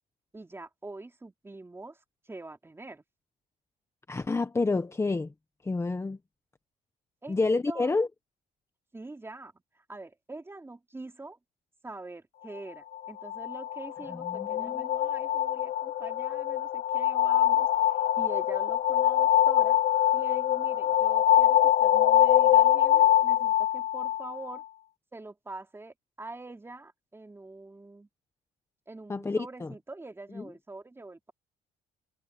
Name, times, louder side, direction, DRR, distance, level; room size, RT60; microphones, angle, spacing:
voice 1, 0.3-2.0 2.3-3.0 7.2-8.0 8.9-11.4 11.8-19.8 20.1-24.6 25.1-28.1 28.9-31.3, right 2 dB, 15° right, 3.5 m, -44 dB
voice 2, 4.1-5.3 5.6-6.2 7.3-8.1 14.3-14.9 29.1-29.7 30.3-30.4, left 3 dB, 15° left, 1.1 m, -29 dB
sound 1, 12.9-24.6, left 11 dB, 70° left, 1.5 m, -24 dB
cardioid pair, 110°, 17 cm